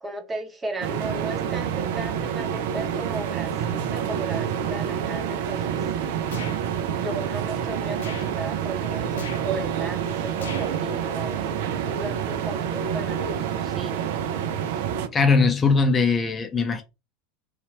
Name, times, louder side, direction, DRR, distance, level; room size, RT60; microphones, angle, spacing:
voice 1, 0.0-5.8 6.9-11.5 11.9-14.0, right 3 dB, 15° right, 0.7 m, -35 dB
sound 1, 0.8-15.1, right 8 dB, 60° right, 0.4 m, -28 dB
sound 2, 6.3-6.6 7.9-8.3 9.1-9.4 10.4-10.8, left 6 dB, 70° left, 0.4 m, -39 dB
voice 2, 15.1-16.8, left 4 dB, 25° left, 0.5 m, -20 dB
2.8 x 2.4 x 2.7 m
figure-of-eight pair, 80°, 0 cm